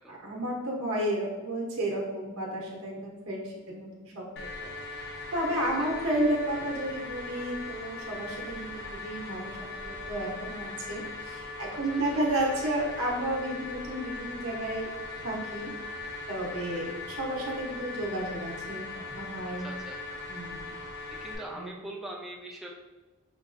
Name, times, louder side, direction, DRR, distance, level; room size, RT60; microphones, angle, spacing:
voice 1, 0.1-4.3 4.6-4.7 5.3-14.9 15.2-15.7 16.3-19.7 20.3-20.7 21.5-21.7, right 1 dB, 70° right, -2 dB, 0.7 m, -32 dB
sound 1, 4.4-21.4, left 3 dB, 50° left, 0.6 m, -40 dB
voice 2, 19.6-20.0 21.1-22.7, right 1 dB, ahead, -2 dB, 0.4 m, -42 dB
5.1 x 2.3 x 2.5 m, 1.2 s
head